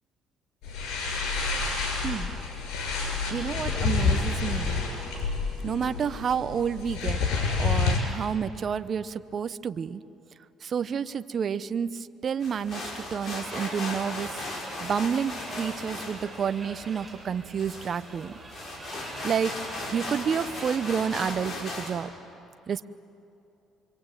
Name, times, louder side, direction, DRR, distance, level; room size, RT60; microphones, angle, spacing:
sound 1, 0.6-8.0, left 4 dB, 75° left, 6.6 m, -28 dB
voice 1, 3.3-4.8 5.6-7.2 7.6-10.0 10.6-14.4 14.8-18.3 19.2-19.5 19.9-22.1 22.7-22.9, right 7 dB, 45° right, 13 dB, 0.7 m, -30 dB
sound 2, 12.4-22.0, left 2 dB, 40° left, 6.3 m, -37 dB
sound 3, 13.4-21.1, right 2 dB, 10° right, 6.6 m, -44 dB
25.0 x 24.5 x 9.0 m, 2.7 s
cardioid pair, 95°, 0 cm